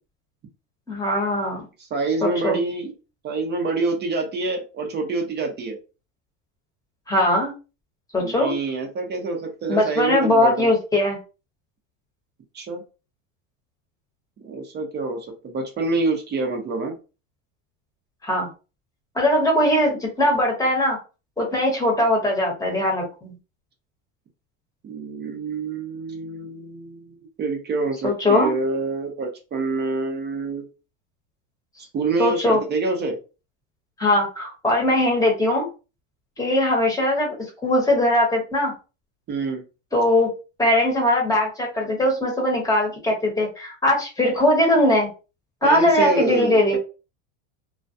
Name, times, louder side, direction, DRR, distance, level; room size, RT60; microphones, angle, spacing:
voice 1, 0.9-1.6 2.2-2.6 7.1-7.5 8.1-8.5 9.7-11.2 18.2-18.5 19.1-21.0 21.4-23.3 28.0-28.5 32.2-32.6 34.0-35.7 36.4-37.4 37.6-38.7 39.9-40.3 40.6-45.1 45.6-46.8, left 1 dB, 10° left, 0 dB, 0.9 m, -20 dB
voice 2, 1.9-2.9 3.2-5.8 8.2-10.7 12.5-12.8 14.4-17.0 24.8-30.6 31.9-33.2 39.3-39.6 45.6-46.8, right 3 dB, 25° right, 3 dB, 0.6 m, -26 dB
2.3 x 2.2 x 2.6 m, 0.32 s
supercardioid pair, 125°, 39 cm